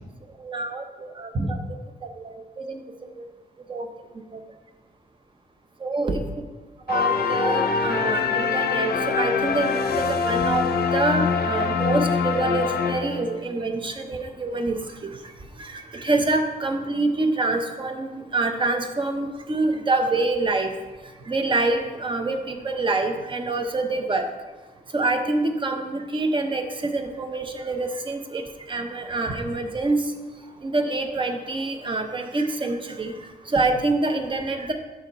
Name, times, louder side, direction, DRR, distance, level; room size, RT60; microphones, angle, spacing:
voice 1, 0.4-1.6 2.0-2.8 3.7-3.9 4.3-4.4 5.8-6.2 6.9-15.1 15.6-20.7 21.3-24.3 24.9-28.4 28.7-30.1 30.6-33.1 33.5-34.7, right 2 dB, 30° right, 5 dB, 0.7 m, -26 dB
sound 1, 6.9-13.5, left 5 dB, 75° left, 0.6 m, -24 dB
7.0 x 6.1 x 4.0 m, 1.2 s
wide cardioid pair, 145°, 17 cm